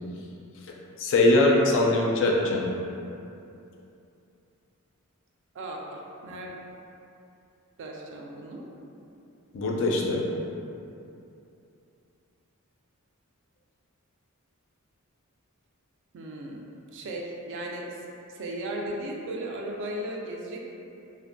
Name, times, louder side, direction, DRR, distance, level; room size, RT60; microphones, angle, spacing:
voice 1, 1.0-2.6 9.5-10.2, left 2 dB, 60° left, -1 dB, 0.3 m, -21 dB
voice 2, 5.5-6.6 7.8-8.7 16.1-16.6 16.9-18.0 18.3-20.6, right 1 dB, 55° right, -1 dB, 0.3 m, -36 dB
2.5 x 2.1 x 2.5 m, 2.7 s
head